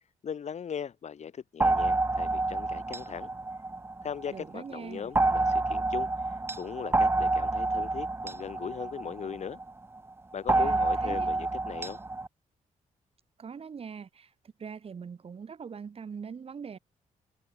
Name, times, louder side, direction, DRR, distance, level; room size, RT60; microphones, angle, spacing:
voice 1, 0.2-3.3 4.0-6.1 6.5-9.6 10.3-12.0, left 7 dB, 55° left, 3.3 m, -38 dB
sound 1, 1.6-4.4 5.2-9.7 10.5-12.3, right 2 dB, 15° right, 2.1 m, -28 dB
voice 2, 4.3-5.1 10.5-11.3 13.4-14.3 14.6-16.8, right 6 dB, 45° right, 3.1 m, -42 dB
cardioid pair, 125°, 14 cm